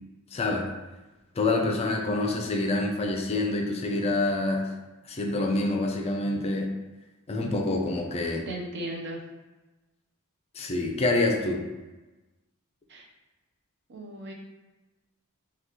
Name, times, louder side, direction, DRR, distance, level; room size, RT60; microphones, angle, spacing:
voice 1, 0.3-0.7 1.4-4.7 5.1-6.7 7.3-8.4 10.6-11.6, left 2 dB, 30° left, 1 dB, 0.4 m, -26 dB
voice 2, 8.5-9.2 12.9-13.0 13.9-14.3, right 1 dB, 50° right, 0 dB, 0.6 m, -36 dB
2.9 x 2.3 x 3.5 m, 1.1 s
head